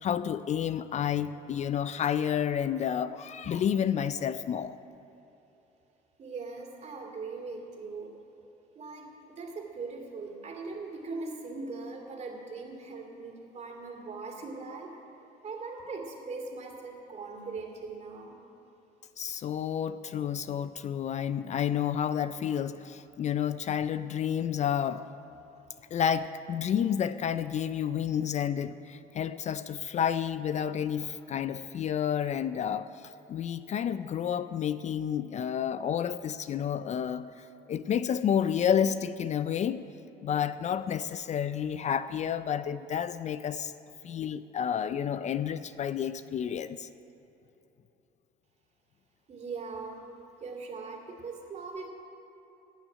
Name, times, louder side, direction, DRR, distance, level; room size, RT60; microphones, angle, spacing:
voice 1, 0.0-4.8 19.2-25.0 25.9-39.8 40.2-43.7 44.0-46.9, left 8 dB, 45° left, 14 dB, 0.4 m, -30 dB
voice 2, 6.2-8.1 8.8-9.1 9.4-14.9 15.4-18.3 49.3-50.1 50.4-51.9, right 4 dB, 40° right, 2 dB, 2.6 m, -40 dB
16.0 x 6.2 x 9.9 m, 3.0 s
cardioid pair, 110°, 17 cm